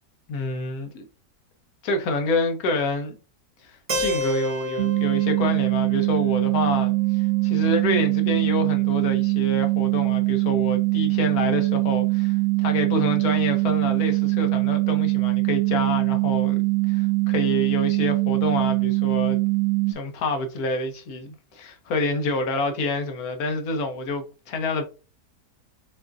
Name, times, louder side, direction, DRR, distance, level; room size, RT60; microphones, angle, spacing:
voice 1, 0.3-1.1 1.8-3.2 3.6-19.4 19.9-24.8, left 2 dB, 70° left, 1.3 m, -28 dB
Keyboard (musical), 3.9-7.8, left 1 dB, 45° right, 0.4 m, -32 dB
sound 1, 4.8-19.9, right 25 dB, 60° right, 1.0 m, -22 dB
6.8 x 2.5 x 2.5 m
omnidirectional pair, 1.7 m